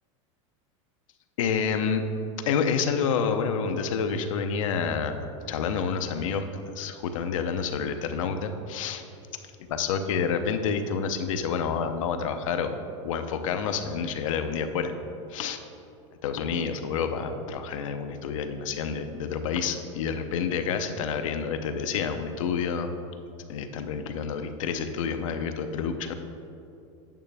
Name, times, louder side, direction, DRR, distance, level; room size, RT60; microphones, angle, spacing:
voice 1, 1.4-2.0 2.5-6.4 6.7-9.0 9.7-12.8 13.0-14.9 15.3-15.6 16.2-22.9 23.5-26.1, left 6 dB, 85° left, 7 dB, 0.6 m, -28 dB
9.0 x 5.9 x 3.4 m, 2.7 s
supercardioid pair, 140°, 16 cm